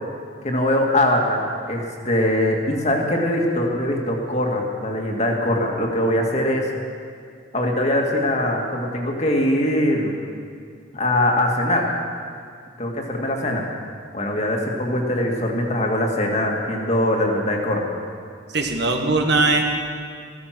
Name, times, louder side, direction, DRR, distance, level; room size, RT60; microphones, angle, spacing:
voice 1, 0.4-6.7 7.5-10.2 10.9-11.9 12.8-13.6 14.1-17.9, left 1 dB, 35° left, 0 dB, 2.1 m, -22 dB
voice 2, 18.5-19.6, right 3 dB, 60° right, 3 dB, 1.6 m, -19 dB
15.0 x 14.0 x 6.0 m, 2.2 s
head